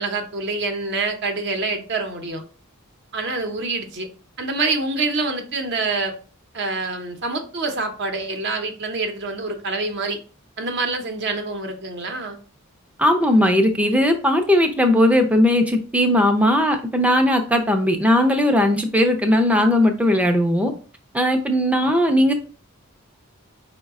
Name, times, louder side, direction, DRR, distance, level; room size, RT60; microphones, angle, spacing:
voice 1, 0.0-2.4 3.1-4.1 4.4-6.2 6.5-10.2 10.6-12.4, right 3 dB, 55° right, 0.7 m, -26 dB
voice 2, 13.0-20.7 21.1-22.3, left 1 dB, 5° right, 0.5 m, -18 dB
4.7 x 2.2 x 3.5 m
head